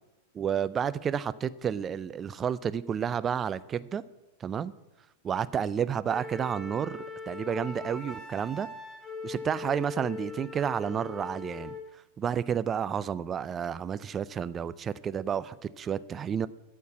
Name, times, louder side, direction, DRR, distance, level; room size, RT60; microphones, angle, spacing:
voice 1, 0.3-4.0 4.4-4.7 5.2-8.7 9.2-11.8 12.2-16.5, right 8 dB, 25° right, 16 dB, 0.5 m, -31 dB
Wind instrument woodwind instrument, 6.1-11.9, left 3 dB, 20° left, 2.8 m, -40 dB
13.0 x 4.6 x 8.4 m, 1.0 s
hypercardioid pair, 105°, 0 cm